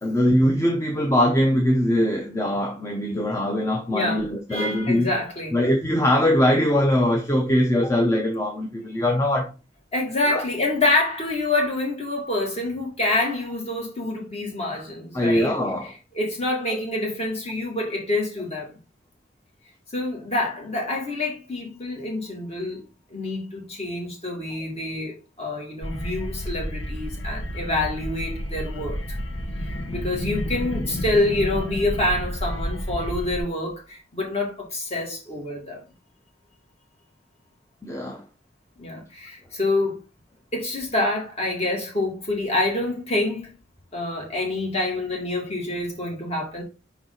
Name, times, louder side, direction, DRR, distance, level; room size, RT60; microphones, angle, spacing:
voice 1, 0.0-5.1 5.5-9.5 10.3-10.4 15.1-15.9 37.8-38.2, left 1 dB, 15° left, 0.8 m, -22 dB
voice 2, 3.9-4.2 4.5-5.5 9.9-15.6 16.1-18.7 19.9-22.8 23.1-29.0 29.9-35.8 38.8-40.0 40.5-43.5 43.9-46.6, left 2 dB, 35° left, 2.5 m, -26 dB
sound 1, 25.8-33.4, equal, 85° left, 1.2 m, -30 dB
5.5 x 4.6 x 3.9 m
head